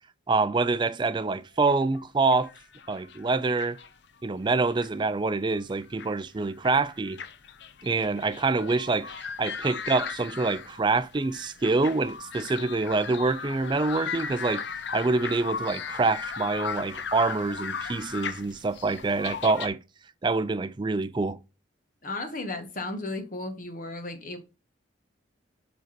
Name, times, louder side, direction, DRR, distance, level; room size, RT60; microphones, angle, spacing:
voice 1, 0.3-2.5 2.9-3.8 4.2-7.2 7.8-9.1 9.4-14.6 14.9-19.8 20.2-21.4, right 3 dB, 25° right, 0.3 m, -26 dB
sound 1, 1.7-4.1 4.5-5.0 5.6-6.2 6.4-19.7, left 6 dB, 60° left, 0.6 m, -38 dB
voice 2, 22.0-24.4, left 2 dB, 40° left, 1.4 m, -34 dB
7.7 x 3.9 x 4.4 m
head